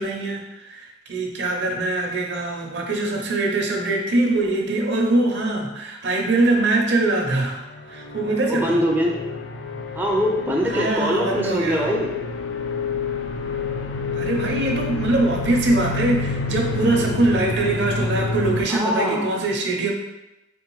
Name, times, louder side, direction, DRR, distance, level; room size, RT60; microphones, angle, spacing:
voice 1, 0.0-7.6 7.9-8.8 10.7-11.9 14.1-19.9, right 2 dB, 65° right, 1 dB, 0.7 m, -22 dB
sound 1, 7.8-18.6, left 4 dB, 85° left, 0.4 m, -28 dB
voice 2, 8.5-9.2 10.0-12.1 18.7-19.3, equal, 10° right, -2 dB, 0.4 m, -22 dB
3.7 x 3.4 x 3.1 m, 1.0 s
head